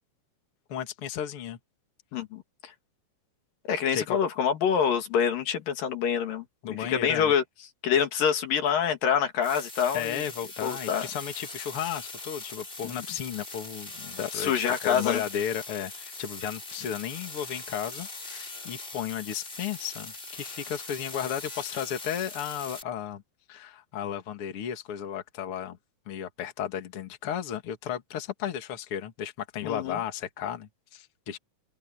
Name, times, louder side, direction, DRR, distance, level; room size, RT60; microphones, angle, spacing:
voice 1, 0.7-1.6 3.9-4.2 6.6-7.3 9.9-14.5 14.8-23.2 23.5-25.8 26.1-31.4, left 9 dB, 45° left, 2.5 m, -34 dB
voice 2, 2.1-2.4 3.7-7.4 7.8-10.2 10.6-11.1 14.3-15.2 29.6-30.0, left 7 dB, 75° left, 3.7 m, -26 dB
sound 1, 9.4-22.8, left 2 dB, 20° left, 2.8 m, -41 dB
omnidirectional pair, 4.0 m